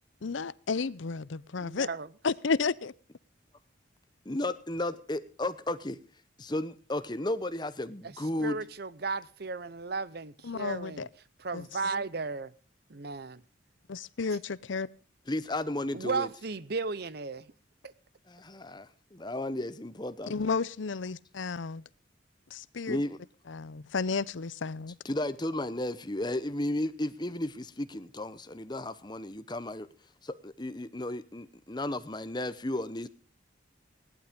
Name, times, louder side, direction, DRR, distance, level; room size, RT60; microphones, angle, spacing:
voice 1, 0.2-1.9 2.2-2.9 10.4-11.1 11.5-11.7 13.9-14.9 20.3-21.8 22.5-23.0 23.5-24.9, left 4 dB, 75° left, 0.6 m, -32 dB
voice 2, 1.6-2.1 8.0-8.1 8.4-11.1 11.4-12.5 12.9-13.4 15.9-17.5, right 4 dB, 55° right, 0.8 m, -35 dB
voice 3, 4.2-6.0 6.4-8.6 15.3-16.3 18.3-20.3 22.9-23.2 25.0-29.9 30.2-33.1, left 1 dB, 20° left, 0.9 m, -34 dB
17.5 x 12.0 x 5.2 m
head